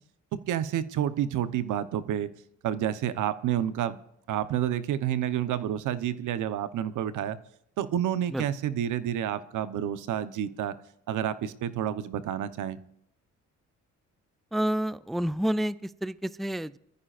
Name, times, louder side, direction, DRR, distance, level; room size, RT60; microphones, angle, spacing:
voice 1, 0.5-2.3 2.6-4.0 4.3-7.4 7.8-10.7 11.1-12.8, right 10 dB, 80° right, 13 dB, 1.0 m, -29 dB
voice 2, 14.5-16.8, equal, ahead, 17 dB, 0.4 m, -29 dB
22.5 x 14.5 x 2.5 m, 0.78 s
cardioid pair, 90°, 30 cm